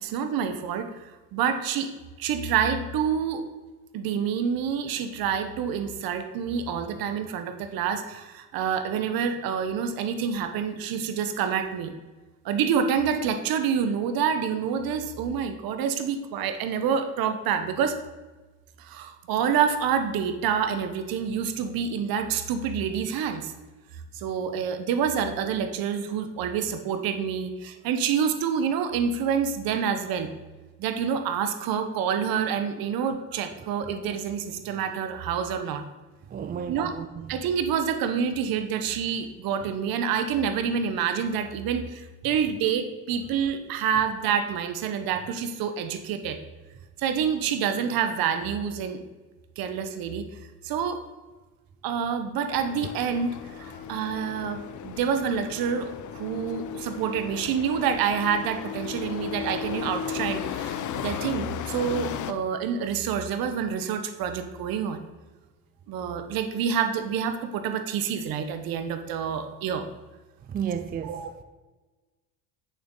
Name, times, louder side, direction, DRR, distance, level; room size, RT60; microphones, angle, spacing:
voice 1, 0.0-1.9 2.2-3.4 3.9-11.9 12.4-18.0 18.8-23.5 24.1-30.3 30.8-35.8 36.7-36.9 37.3-46.4 47.0-49.0 49.6-50.2 50.6-51.0 51.8-65.0 65.9-69.9 71.0-71.4, right 7 dB, 60° right, 1.1 m, -27 dB
voice 2, 36.3-37.4 53.7-53.9 70.4-71.4, right 8 dB, 25° right, 0.4 m, -33 dB
sound 1, 52.5-62.3, left 8 dB, 50° left, 0.7 m, -35 dB
8.6 x 6.9 x 3.8 m
supercardioid pair, 90°, 39 cm